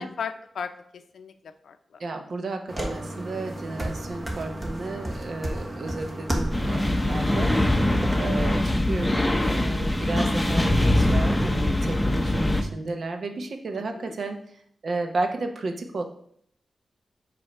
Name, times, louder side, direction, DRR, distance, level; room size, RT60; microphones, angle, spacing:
voice 1, 0.0-2.0 13.9-14.2, left 6 dB, 85° left, 9 dB, 0.5 m, -37 dB
voice 2, 2.0-7.9 8.2-14.4 14.8-16.0, right 3 dB, 65° right, 5 dB, 0.9 m, -33 dB
sound 1, 2.7-8.1, right 1 dB, 25° right, 1.2 m, -33 dB
sound 2, 6.5-12.6, left 1 dB, 10° left, 0.7 m, -23 dB
7.5 x 2.7 x 5.4 m, 0.65 s
wide cardioid pair, 90°, 0 cm